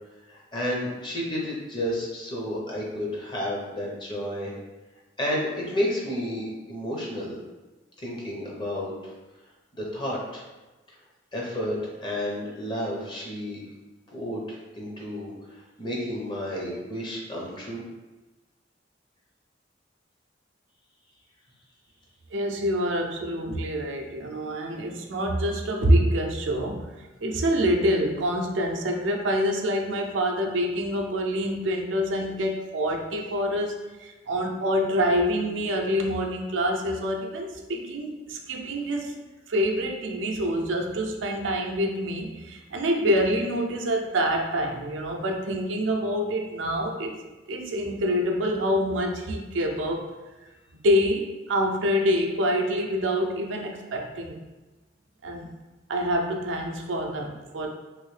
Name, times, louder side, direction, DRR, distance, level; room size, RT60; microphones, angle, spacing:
voice 1, 0.3-4.6 5.2-7.3 8.0-9.1 9.7-10.4 11.3-13.6 14.1-17.8, left 1 dB, 25° left, -4 dB, 0.7 m, -31 dB
voice 2, 22.3-26.9 27.2-39.1 39.5-47.2 47.5-50.1 50.8-54.4 55.2-55.5 55.9-57.7, equal, 80° right, 2 dB, 0.5 m, -26 dB
3.0 x 2.7 x 3.2 m, 1.2 s
head